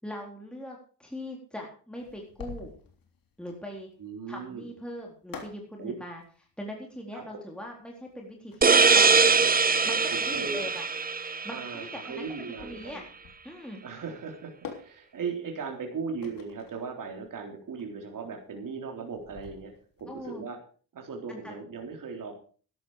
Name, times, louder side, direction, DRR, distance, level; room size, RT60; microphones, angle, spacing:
voice 1, 0.0-2.7 3.4-3.9 4.3-6.2 6.6-9.2 9.8-10.8 11.4-13.0 13.4-13.8 20.1-20.4 21.3-21.5, equal, ahead, -1 dB, 3.9 m, -41 dB
sound 1, 2.0-20.3, left 6 dB, 60° left, 3.5 m, -49 dB
voice 2, 4.0-4.7 5.8-5.9 7.1-7.2 10.1-10.7 11.5-13.0 13.8-19.7 20.0-20.6 20.9-22.3, right 5 dB, 55° right, 1 dB, 3.8 m, -37 dB
sound 2, 8.6-12.1, right 5 dB, 25° right, 0.9 m, -22 dB
13.0 x 11.5 x 4.9 m, 0.40 s
cardioid pair, 80°, 38 cm